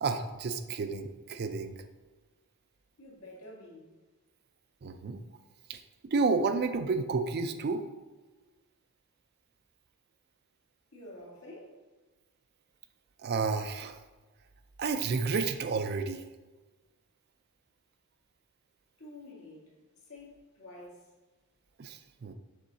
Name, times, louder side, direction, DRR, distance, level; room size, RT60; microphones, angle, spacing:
voice 1, 0.0-1.7 4.8-5.2 5.7-5.8 6.1-7.8 13.2-13.9 14.8-16.2 21.8-22.3, right 4 dB, 45° right, 0.4 m, -31 dB
voice 2, 3.0-4.0 10.9-11.7 19.0-19.8 20.0-21.1, left 1 dB, 70° left, 1.8 m, -49 dB
6.9 x 3.6 x 4.0 m
head